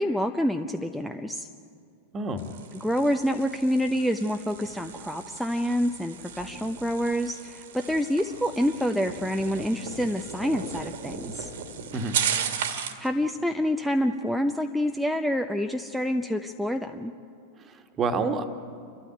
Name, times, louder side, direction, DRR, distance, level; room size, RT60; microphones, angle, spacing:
voice 1, 0.0-1.5 2.7-11.5 13.0-17.1, equal, ahead, 7 dB, 0.8 m, -27 dB
voice 2, 2.1-2.4 11.9-12.2 17.6-18.4, right 4 dB, 25° right, 8 dB, 1.7 m, -28 dB
sound 1, 2.4-13.1, right 7 dB, 55° right, 1.7 m, -36 dB
29.5 x 13.0 x 9.9 m, 2.4 s
figure-of-eight pair, 90°, 0 cm